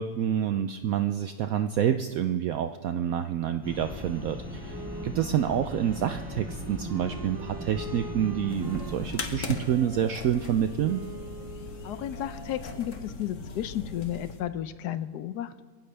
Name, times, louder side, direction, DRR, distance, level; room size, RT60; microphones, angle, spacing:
voice 1, 0.0-11.0, right 9 dB, 70° right, 8 dB, 0.9 m, -28 dB
sound 1, 3.6-9.1, equal, 5° right, 3.4 m, -38 dB
Wind instrument woodwind instrument, 4.7-12.4, right 1 dB, 25° right, 0.5 m, -45 dB
sound 2, 8.5-14.4, left 4 dB, 50° left, 1.4 m, -39 dB
voice 2, 11.8-15.6, left 11 dB, 75° left, 12 dB, 1.2 m, -33 dB
21.5 x 16.5 x 3.4 m, 1.4 s
omnidirectional pair, 1.9 m